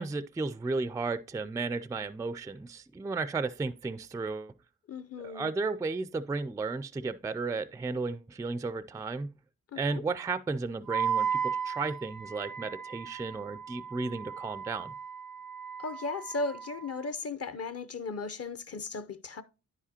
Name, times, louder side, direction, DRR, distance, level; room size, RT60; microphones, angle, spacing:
voice 1, 0.0-4.5 5.2-9.3 9.8-14.9, right 3 dB, 10° right, 0.3 m, -34 dB
voice 2, 4.9-5.5 9.7-10.0 15.8-19.4, left 3 dB, 45° left, 0.7 m, -36 dB
Wind instrument woodwind instrument, 10.9-17.0, right 7 dB, 90° right, 0.6 m, -35 dB
9.6 x 4.9 x 2.8 m
cardioid pair, 50°, 35 cm